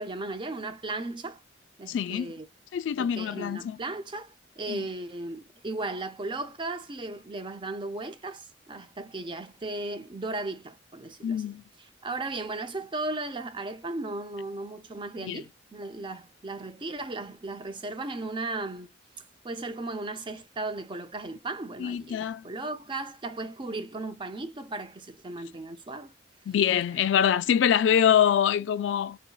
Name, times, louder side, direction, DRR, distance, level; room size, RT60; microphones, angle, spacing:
voice 1, 0.0-1.4 1.8-2.5 3.0-11.4 11.8-18.9 19.4-26.1, right 2 dB, 25° right, 0.5 m, -36 dB
voice 2, 1.9-2.3 2.7-3.8 4.7-4.8 11.2-11.6 15.2-15.4 21.8-22.4 26.5-29.2, left 9 dB, 85° left, 0.3 m, -24 dB
3.7 x 2.6 x 2.3 m
head